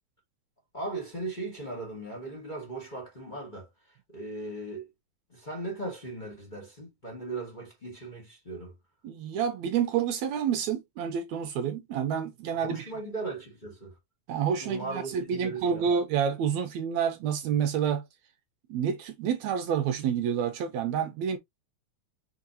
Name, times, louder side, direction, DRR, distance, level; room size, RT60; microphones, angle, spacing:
voice 1, 0.7-4.9 5.3-8.7 12.5-14.0 14.5-15.9, right 2 dB, 20° left, 1.7 m, -38 dB
voice 2, 9.0-12.8 14.3-18.1 18.7-21.4, right 8 dB, 75° right, 1.9 m, -28 dB
5.4 x 3.7 x 2.7 m
omnidirectional pair, 3.5 m